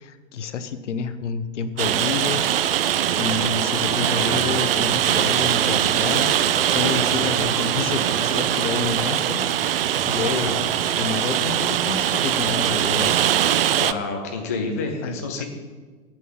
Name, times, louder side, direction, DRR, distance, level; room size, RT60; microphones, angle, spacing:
voice 1, 0.0-2.8 3.1-10.6 11.0-13.2 15.0-15.4, left 6 dB, 60° left, 11 dB, 0.9 m, -29 dB
Rain, 1.8-13.9, right 10 dB, 45° right, 0.5 m, -22 dB
sound 1, 3.1-12.5, right 4 dB, 75° right, 1.3 m, -38 dB
voice 2, 10.2-10.7 13.8-15.4, left 3 dB, 15° left, 1 dB, 0.3 m, -29 dB
8.7 x 6.1 x 7.7 m, 1.4 s
figure-of-eight pair, 115°, 41 cm